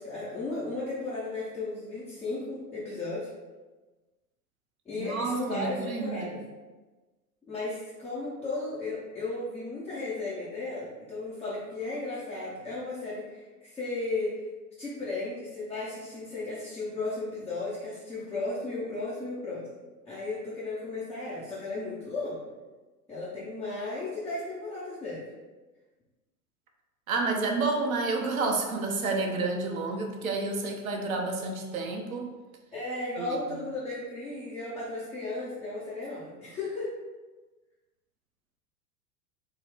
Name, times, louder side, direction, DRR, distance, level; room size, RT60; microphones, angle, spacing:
voice 1, 0.0-3.3 4.9-6.4 7.5-14.4 14.8-19.6 20.1-22.4 23.1-25.2 32.7-36.9, left 2 dB, 5° left, -11 dB, 0.3 m, -35 dB
voice 2, 5.0-6.4 27.1-32.3 33.2-33.7, right 3 dB, 65° right, 2 dB, 0.7 m, -30 dB
3.9 x 2.0 x 3.9 m, 1.2 s
figure-of-eight pair, 90°, 46 cm